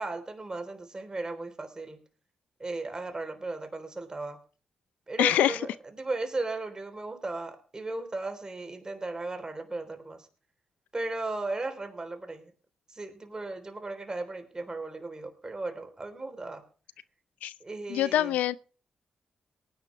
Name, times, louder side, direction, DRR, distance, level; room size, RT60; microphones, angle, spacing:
voice 1, 0.0-2.0 2.6-4.4 5.1-5.7 6.0-10.3 10.9-12.5 12.9-16.6 17.6-18.3, right 2 dB, 30° right, 3.5 m, -36 dB
voice 2, 5.2-5.6 17.4-17.5 17.9-18.5, left 12 dB, 85° left, 0.5 m, -24 dB
18.5 x 10.0 x 3.3 m
supercardioid pair, 45°, 2 cm